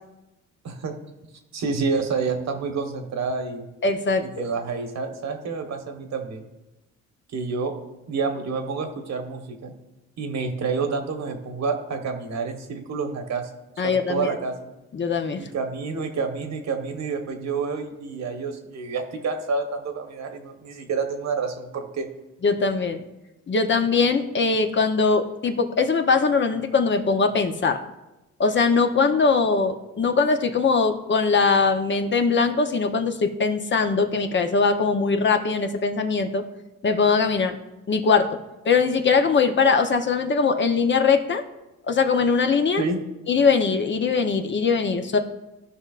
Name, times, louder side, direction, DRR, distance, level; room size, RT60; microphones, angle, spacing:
voice 1, 1.5-3.7 4.4-6.5 7.3-7.7 8.1-9.7 10.2-13.5 13.8-14.6 15.4-22.1 42.8-43.0, right 4 dB, 60° right, 5 dB, 1.3 m, -28 dB
voice 2, 3.8-4.3 13.8-14.3 14.9-15.5 22.4-23.0 23.5-27.8 28.4-36.4 36.8-37.6 37.9-38.3 38.6-41.4 41.9-42.8 43.3-45.2, left 4 dB, 40° left, 6 dB, 0.8 m, -21 dB
14.5 x 5.5 x 2.5 m, 1.0 s
cardioid pair, 90°, 30 cm